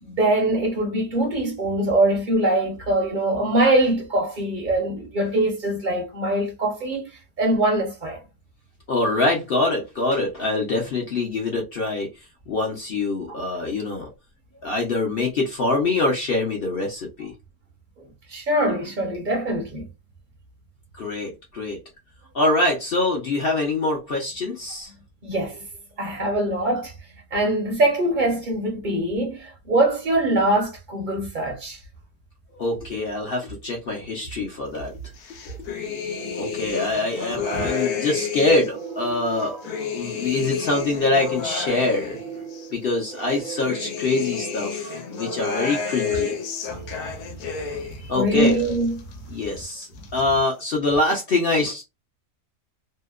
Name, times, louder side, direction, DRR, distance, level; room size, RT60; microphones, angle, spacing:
voice 1, 0.0-7.1 7.4-8.2 18.3-19.8 25.2-25.7 26.0-26.9 27.3-31.8 37.5-37.7 46.1-46.3 46.9-47.0 47.7-47.8 48.1-49.0, right 1 dB, 45° right, 0.7 m, -23 dB
voice 2, 8.9-12.1 12.5-14.1 14.6-17.3 21.0-21.8 22.3-24.9 32.5-34.9 35.3-35.5 36.4-39.6 39.8-42.2 42.7-46.3 48.0-48.6 49.3-51.8, left 2 dB, 55° left, 0.7 m, -24 dB
sound 1, 35.2-38.8 39.3-42.7 43.2-48.0 48.3-49.2 49.4-50.2, left 7 dB, 85° left, 1.1 m, -31 dB
sound 2, 36.1-47.4, right 6 dB, 70° right, 1.1 m, -39 dB
2.8 x 2.1 x 2.3 m
omnidirectional pair, 1.5 m